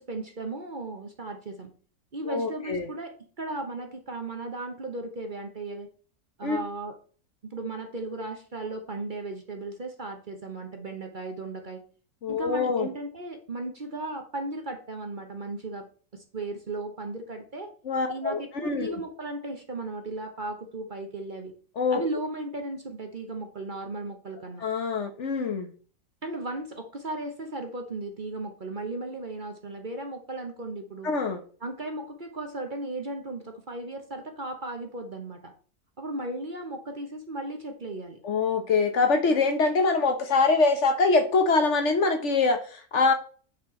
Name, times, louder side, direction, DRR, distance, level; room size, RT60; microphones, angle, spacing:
voice 1, 0.0-1.7 2.1-5.9 6.4-6.9 7.4-11.8 12.3-15.9 16.1-17.7 18.1-21.5 21.9-24.6 26.2-31.1 31.6-35.5 36.0-38.2, right 2 dB, 35° right, 4 dB, 1.0 m, -36 dB
voice 2, 2.2-2.9 6.4-6.6 12.2-12.9 17.8-18.9 21.8-22.0 24.6-25.7 31.0-31.4 38.2-43.1, left 4 dB, 55° left, 7 dB, 1.2 m, -24 dB
8.5 x 4.4 x 4.3 m, 0.42 s
omnidirectional pair, 1.5 m